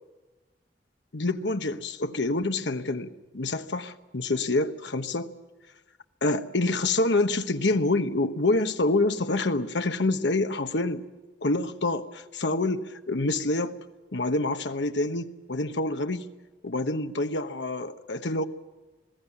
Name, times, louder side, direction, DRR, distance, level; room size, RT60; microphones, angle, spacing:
voice 1, 1.1-5.3 6.2-11.0 11.4-13.8 14.1-16.3 16.6-18.4, left 2 dB, 80° left, 1.1 m, -27 dB
21.0 x 16.0 x 9.8 m
head